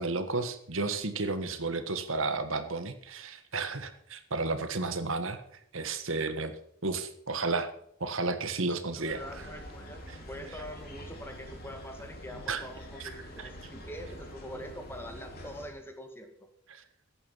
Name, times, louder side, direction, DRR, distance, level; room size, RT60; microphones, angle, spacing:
voice 1, 0.0-5.4 5.7-6.5 6.8-7.7 8.0-9.2 12.5-12.6 13.4-13.5 16.7-16.8, right 3 dB, 65° right, 9 dB, 1.5 m, -32 dB
voice 2, 8.8-16.3, equal, 10° left, 5 dB, 2.0 m, -44 dB
sound 1, 9.0-15.8, equal, 45° left, 3.6 m, -46 dB
15.0 x 10.5 x 5.7 m, 0.67 s
head